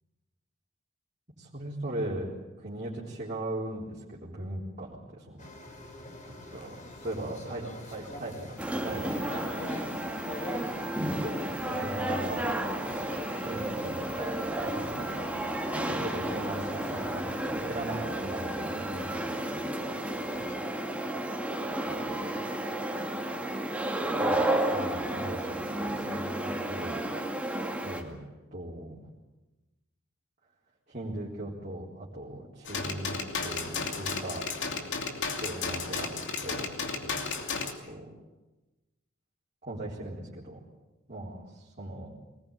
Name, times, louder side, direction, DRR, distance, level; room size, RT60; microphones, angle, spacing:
voice 1, 1.4-2.3 2.6-5.4 6.5-9.4 11.0-11.5 11.8-12.4 13.4-14.3 14.6-15.1 15.9-20.0 21.8-22.4 24.2-27.0 27.8-28.2 28.5-29.1 30.9-34.4 35.3-36.1 36.4-36.7 37.0-37.2 37.8-38.1 39.6-40.6 41.1-42.1, right 1 dB, 35° right, -6 dB, 4.1 m, -39 dB
sound 1, 5.4-20.5, left 1 dB, 35° left, 4.0 m, -46 dB
sound 2, 8.6-28.0, right 1 dB, 5° right, 2.3 m, -32 dB
sound 3, 32.6-37.7, left 4 dB, 60° left, 2.8 m, -33 dB
23.5 x 20.0 x 9.0 m, 1.1 s
head